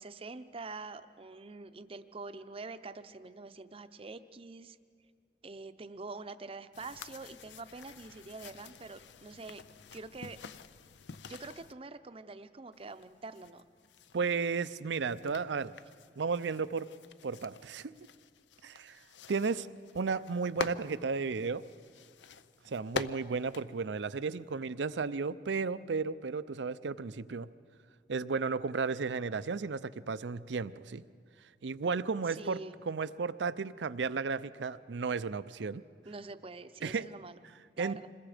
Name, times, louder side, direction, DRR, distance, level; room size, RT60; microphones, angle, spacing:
voice 1, 0.0-4.8 5.4-9.6 9.9-10.4 11.2-13.6 32.3-32.7 36.0-37.4 37.8-38.1, right 3 dB, 30° right, 11 dB, 0.6 m, -45 dB
sound 1, 6.7-11.7 12.7-24.6, left 5 dB, 85° left, 0.6 m, -46 dB
voice 2, 14.1-15.7 16.2-16.9 17.2-17.9 18.6-19.0 19.3-19.7 19.9-21.6 22.7-27.5 28.1-31.0 31.6-32.6 32.9-35.8 36.8-37.1 37.8-38.0, right 5 dB, 85° right, 15 dB, 0.5 m, -34 dB
26.5 x 21.0 x 5.0 m, 2.3 s
head